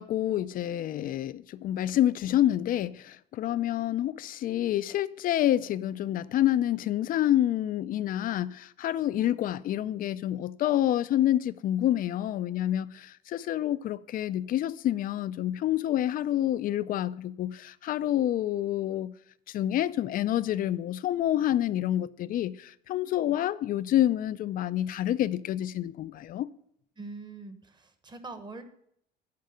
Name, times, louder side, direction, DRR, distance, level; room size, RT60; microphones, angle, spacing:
voice 1, 0.0-19.1 19.5-26.5, left 12 dB, 45° left, 0.4 m, -28 dB
voice 2, 27.0-28.6, right 3 dB, 20° right, 1.1 m, -43 dB
10.5 x 4.7 x 6.3 m
cardioid pair, 115°, 19 cm